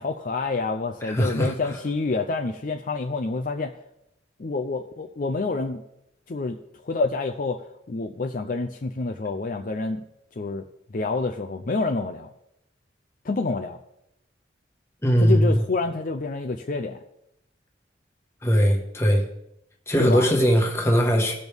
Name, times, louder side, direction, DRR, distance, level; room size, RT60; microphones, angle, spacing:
voice 1, 0.0-3.7 4.4-5.8 6.3-6.6 6.8-10.0 10.4-10.6 10.9-12.3 13.2-13.8 15.2-17.0 20.0-20.3, left 3 dB, 45° left, 5 dB, 0.5 m, -28 dB
voice 2, 1.1-1.5 15.0-15.5 18.4-19.2 19.9-21.3, equal, 15° left, 1 dB, 1.4 m, -20 dB
18.0 x 6.2 x 3.5 m, 0.82 s
head